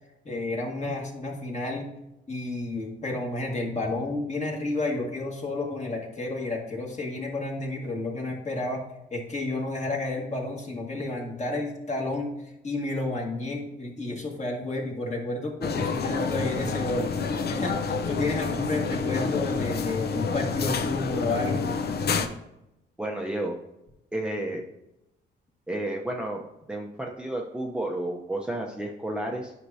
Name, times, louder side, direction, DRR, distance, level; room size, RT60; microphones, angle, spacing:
voice 1, 0.2-1.9 2.3-8.8 9.1-17.1 17.5-21.7, left 2 dB, 35° left, -1 dB, 2.0 m, -31 dB
sound 1, 15.6-22.3, left 5 dB, 55° left, 0.7 m, -28 dB
voice 2, 23.0-23.6 24.1-24.6 25.7-26.4 26.7-29.5, right 1 dB, 5° right, 0 dB, 0.8 m, -31 dB
9.7 x 5.9 x 2.8 m, 0.89 s
cardioid pair, 90°, 20 cm